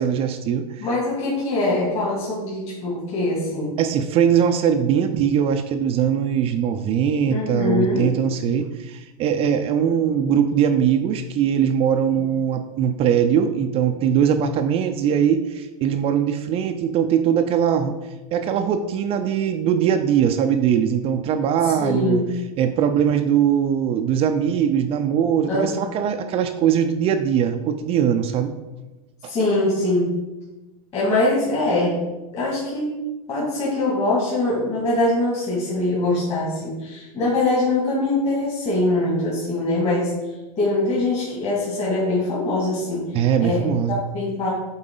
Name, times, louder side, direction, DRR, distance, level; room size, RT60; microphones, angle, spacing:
voice 1, 0.0-0.9 3.8-18.0 18.3-22.2 22.6-28.5 29.2-29.3 43.1-44.0, right 8 dB, 30° right, 7 dB, 0.4 m, -21 dB
voice 2, 0.8-3.8 7.3-8.1 21.6-22.3 25.5-25.8 29.3-30.2 30.9-32.0 32.3-33.0 33.3-40.1 40.6-44.5, left 2 dB, 35° left, -6 dB, 2.2 m, -23 dB
7.7 x 4.0 x 3.8 m, 1.1 s
supercardioid pair, 130°, 19 cm